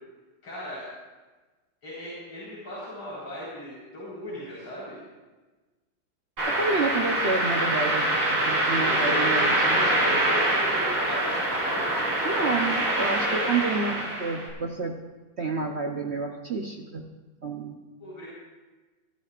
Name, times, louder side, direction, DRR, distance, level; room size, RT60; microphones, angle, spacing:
voice 1, 0.4-0.9 1.8-5.0 8.8-11.8 13.2-13.5 18.0-18.3, left 1 dB, 75° left, -9 dB, 5.3 m, -37 dB
sound 1, 6.4-14.5, right 1 dB, 75° right, 6.3 m, -25 dB
voice 2, 6.5-8.1 8.3-10.2 12.2-15.0 15.4-17.0 17.4-17.8, right 3 dB, 55° right, 2 dB, 0.7 m, -29 dB
23.0 x 12.5 x 2.5 m, 1.2 s
omnidirectional pair, 2.2 m